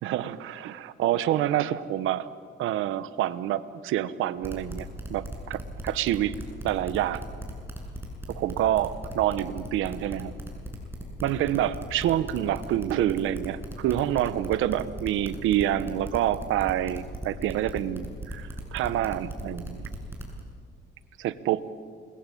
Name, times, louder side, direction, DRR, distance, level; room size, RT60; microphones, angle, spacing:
voice 1, 0.0-2.3 2.6-6.3 6.6-7.2 8.3-10.3 11.2-19.8 21.2-21.6, right 12 dB, 90° right, 14 dB, 1.1 m, -27 dB
sound 1, 4.4-20.4, right 1 dB, 10° right, 7.5 m, -37 dB
28.5 x 21.0 x 8.6 m, 2.1 s
cardioid pair, 90°, 20 cm